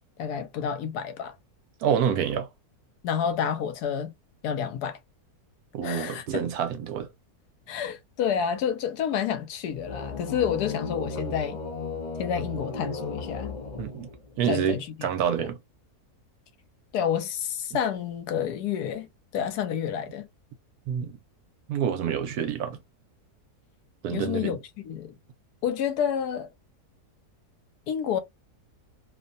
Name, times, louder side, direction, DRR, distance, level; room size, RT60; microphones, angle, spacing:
voice 1, 0.2-1.3 3.0-4.1 4.4-5.0 5.8-6.4 7.7-11.6 12.2-13.5 14.5-15.1 15.4-15.5 16.9-19.1 19.3-20.3 24.1-24.6 24.8-25.1 25.6-26.5 27.9-28.2, left 8 dB, 80° left, 1.2 m, -29 dB
voice 2, 1.8-2.5 5.7-7.1 13.8-14.1 14.4-15.6 20.9-21.2 21.7-22.8 24.0-24.6, right 8 dB, 75° right, 1.1 m, -27 dB
sound 1, 9.7-14.4, left 3 dB, 50° left, 0.5 m, -35 dB
2.8 x 2.1 x 2.5 m
omnidirectional pair, 1.7 m